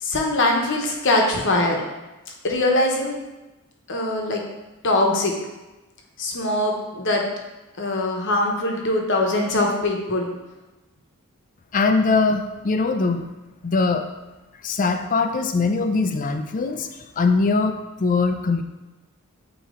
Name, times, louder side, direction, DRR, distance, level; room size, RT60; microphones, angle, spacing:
voice 1, 0.0-1.8 2.4-3.2 3.9-4.4 4.8-5.3 6.2-7.2 7.8-10.3, left 2 dB, 55° left, 1 dB, 1.0 m, -22 dB
voice 2, 11.7-13.3 13.6-14.1 14.6-18.6, left 4 dB, 40° left, 7 dB, 0.4 m, -21 dB
8.3 x 3.0 x 3.7 m, 1.1 s
head